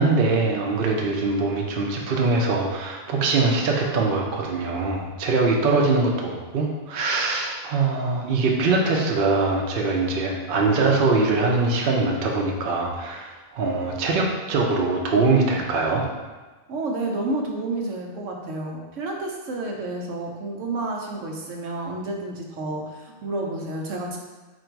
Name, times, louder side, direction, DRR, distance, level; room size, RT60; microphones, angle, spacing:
voice 1, 0.0-16.1, right 3 dB, 55° right, -1 dB, 0.8 m, -22 dB
voice 2, 16.7-24.2, right 2 dB, 85° right, 0 dB, 1.1 m, -30 dB
4.6 x 2.6 x 4.5 m, 1.3 s
omnidirectional pair, 1.2 m